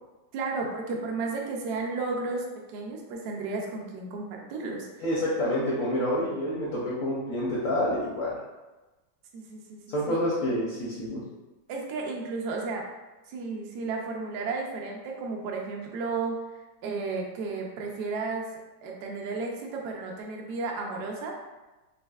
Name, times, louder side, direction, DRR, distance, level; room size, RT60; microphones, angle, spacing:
voice 1, 0.3-5.0 9.3-10.2 11.7-12.9 13.3-18.5 18.8-21.4, right 3 dB, 70° right, 0 dB, 1.0 m, -33 dB
voice 2, 5.0-8.3 9.9-11.2, left 1 dB, 70° left, -6 dB, 0.7 m, -28 dB
4.2 x 2.6 x 2.3 m, 1.1 s
omnidirectional pair, 2.2 m